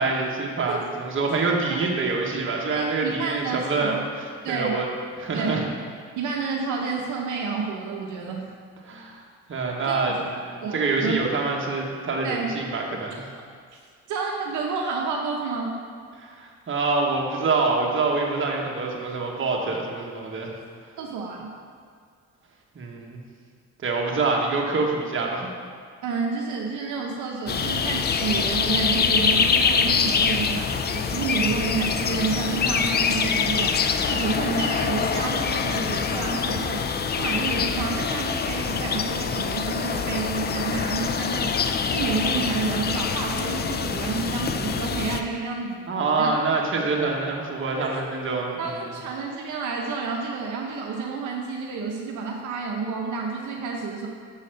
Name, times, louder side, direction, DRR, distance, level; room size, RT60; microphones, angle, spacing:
voice 1, 0.0-4.9 5.2-5.6 8.9-9.2 9.5-13.3 16.2-20.5 22.7-23.2 23.8-25.5 45.9-48.8, right 3 dB, 40° right, -1 dB, 1.3 m, -26 dB
voice 2, 2.7-4.1 4.4-4.8 5.3-5.7 6.2-8.5 9.9-10.0 10.6-11.2 12.2-12.5 14.1-15.8 21.0-21.6 26.0-33.8 34.1-36.8 37.1-41.5 41.9-45.8 46.2-46.3 47.8-48.0 48.6-54.1, right 4 dB, 75° right, 0 dB, 0.8 m, -29 dB
sound 1, 27.5-45.2, left 6 dB, 35° left, 0.4 m, -25 dB
6.4 x 4.0 x 6.5 m, 2.1 s
cardioid pair, 90°, 30 cm